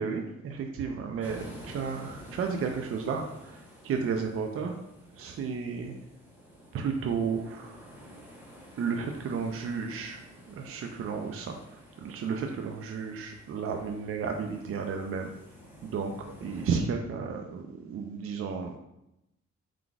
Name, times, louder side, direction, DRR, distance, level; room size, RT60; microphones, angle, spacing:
voice 1, 0.0-4.8 5.1-6.0 6.7-7.9 8.8-15.3 15.8-16.1 16.4-18.8, right 5 dB, 50° right, 4 dB, 0.4 m, -33 dB
sound 1, 1.2-16.8, equal, 5° right, 0.9 m, -50 dB
4.7 x 3.9 x 2.3 m, 0.85 s
cardioid pair, 130°, 30 cm